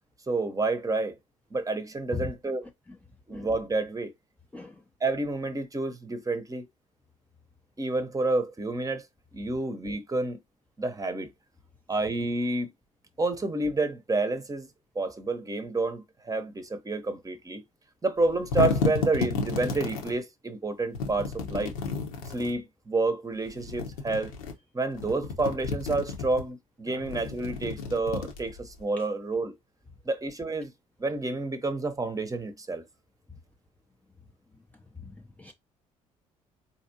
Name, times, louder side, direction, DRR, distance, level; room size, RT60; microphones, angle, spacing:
voice 1, 0.3-1.1 1.5-2.7 3.3-4.1 5.0-6.7 7.8-9.0 9.3-10.4 10.8-11.3 11.9-12.7 13.2-14.7 14.9-17.6 18.0-21.7 22.3-24.3 24.7-29.5 30.1-30.7 31.0-32.8, right 2 dB, 20° right, 0.9 m, -29 dB
sound 1, 18.2-20.1 20.9-22.6 23.5-24.5 24.9-26.4 27.0-28.8, left 5 dB, 70° left, 0.9 m, -32 dB
voice 2, 35.0-35.5, left 4 dB, 10° left, 0.6 m, -38 dB
4.3 x 2.7 x 2.8 m
figure-of-eight pair, 55°, 18 cm